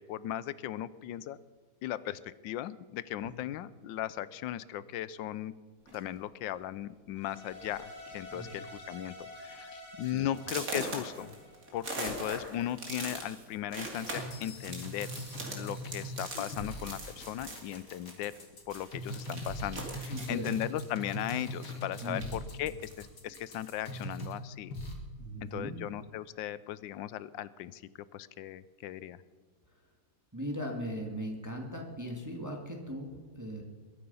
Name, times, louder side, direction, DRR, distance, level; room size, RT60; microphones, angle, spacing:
voice 1, 0.0-1.4 1.8-5.5 5.9-11.3 11.7-15.1 15.5-18.3 18.7-24.8 25.4-27.8 28.1-29.2, left 12 dB, 80° left, 17 dB, 1.3 m, -37 dB
sound 1, 5.9-6.2 7.0-7.1 7.5-7.8 8.1-8.5 8.9-9.0 9.5-9.6 10.4-18.4 18.7-22.4 22.8-23.8, right 2 dB, 45° right, 3.0 m, -42 dB
sound 2, 7.2-12.4, left 1 dB, 35° left, 2.8 m, -49 dB
sound 3, 14.0-24.4 24.7-24.9, equal, 60° left, 2.9 m, -41 dB
voice 2, 20.1-20.5 22.0-22.2 25.2-25.8 30.3-33.6, equal, 10° right, 1 dB, 1.8 m, -39 dB
22.0 x 10.0 x 5.5 m, 1.4 s
omnidirectional pair, 2.1 m